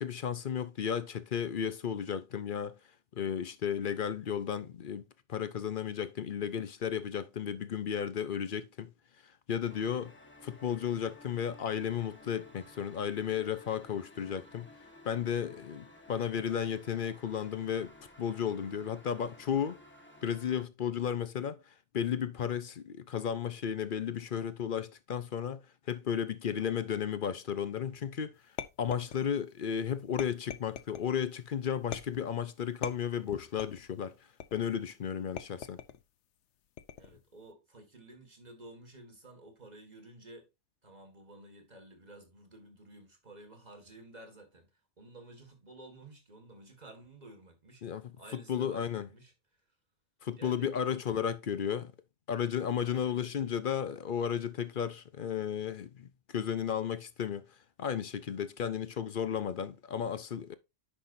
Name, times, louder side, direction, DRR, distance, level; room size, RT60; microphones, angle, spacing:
voice 1, 0.0-2.8 3.1-8.9 9.5-10.1 10.4-14.7 15.0-19.8 20.2-25.6 25.9-28.3 28.8-34.2 34.5-35.8 47.8-49.1 50.2-51.9 52.3-57.5 57.8-60.5, left 8 dB, 55° left, 0.7 m, -34 dB
sound 1, 9.7-20.6, left 1 dB, 10° left, 1.2 m, -55 dB
sound 2, 28.6-29.5 30.2-31.1 31.9-32.4 32.8-33.9 34.4-34.8 35.4-36.0 36.8-37.2, left 9 dB, 75° left, 1.0 m, -42 dB
voice 2, 37.0-40.5 40.8-44.7 45.0-47.8 48.2-49.3 50.3-51.0 52.8-53.5, right 2 dB, 35° right, 2.0 m, -53 dB
10.0 x 5.6 x 2.6 m
omnidirectional pair, 1.2 m